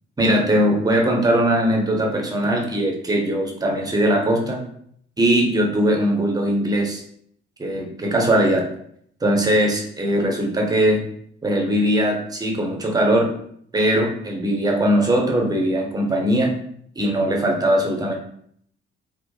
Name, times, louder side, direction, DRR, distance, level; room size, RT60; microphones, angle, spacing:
voice 1, 0.2-4.6 5.2-7.0 7.6-8.7 9.2-11.0 11.4-13.3 13.7-16.5 17.0-18.1, right 1 dB, 15° right, 1 dB, 0.6 m, -20 dB
2.5 x 2.2 x 2.2 m, 0.66 s
figure-of-eight pair, 45°, 30 cm